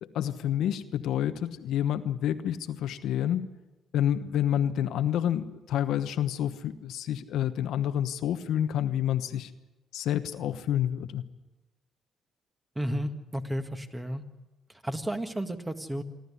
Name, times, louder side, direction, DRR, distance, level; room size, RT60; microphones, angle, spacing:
voice 1, 0.0-3.5 3.9-9.5 9.9-11.2, left 10 dB, 80° left, 9 dB, 1.1 m, -28 dB
voice 2, 12.7-14.2 14.7-16.0, right 1 dB, 15° right, 7 dB, 1.8 m, -32 dB
28.0 x 12.0 x 9.8 m, 1.1 s
cardioid pair, 90°, 0 cm